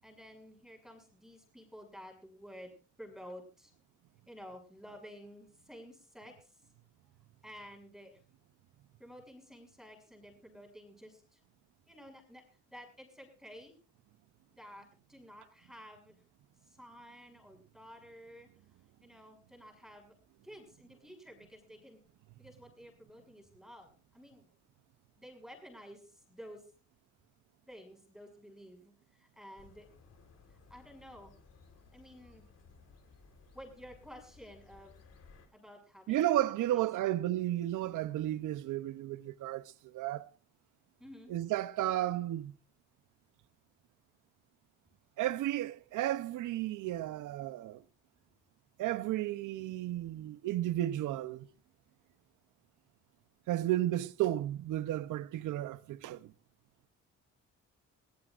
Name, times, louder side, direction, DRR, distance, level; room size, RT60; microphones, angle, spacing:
voice 1, 0.0-3.7 4.3-6.6 7.4-8.2 9.0-11.4 11.9-13.8 14.5-16.2 16.6-18.5 19.0-20.1 20.4-22.0 22.4-24.5 25.2-26.6 27.7-29.9 30.7-31.3 31.9-32.5 33.5-35.0 35.5-37.2 41.0-41.3, equal, ahead, 6.6 m, -52 dB
sound 1, 29.6-35.5, left 4 dB, 55° left, 3.9 m, -59 dB
voice 2, 36.1-40.3 41.3-42.6 45.2-47.8 48.8-51.5 53.5-56.3, right 14 dB, 80° right, 0.8 m, -33 dB
23.0 x 17.5 x 2.5 m
cardioid pair, 90°, 30 cm